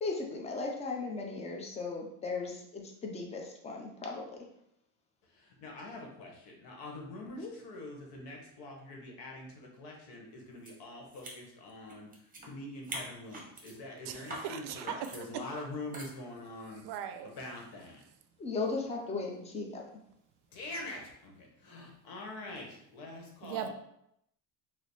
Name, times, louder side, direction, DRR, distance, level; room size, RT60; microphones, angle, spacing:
voice 1, 0.0-4.2 7.4-7.5 18.4-19.8, left 3 dB, 15° left, 0 dB, 0.5 m, -36 dB
voice 2, 5.4-12.1 12.4-16.8 17.2-18.0 20.5-23.7, left 2 dB, 65° left, 0 dB, 1.1 m, -44 dB
sound 1, 10.6-10.7 11.1-12.5 12.8-13.7 14.2-14.5 14.9-15.2 15.9-16.1, right 2 dB, 20° right, 0.8 m, -43 dB
voice 3, 14.1-15.0 16.8-17.3 23.4-23.7, right 10 dB, 65° right, 8 dB, 0.5 m, -39 dB
3.1 x 2.0 x 4.0 m, 0.77 s
cardioid pair, 125°, 43 cm